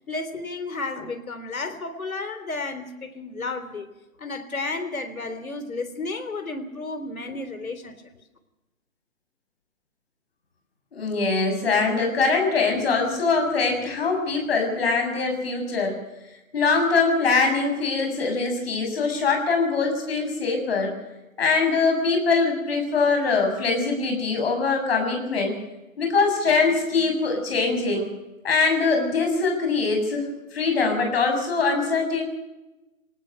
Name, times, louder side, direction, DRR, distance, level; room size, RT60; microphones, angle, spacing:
voice 1, 0.1-3.9 4.2-8.0, left 3 dB, 85° left, 10 dB, 3.6 m, -32 dB
voice 2, 10.9-16.0 16.5-20.9 21.4-25.6 26.0-28.1 28.4-30.3 30.5-32.2, left 4 dB, 45° left, 3 dB, 7.1 m, -23 dB
24.0 x 18.5 x 6.8 m, 1.0 s
hypercardioid pair, 165°, 41 cm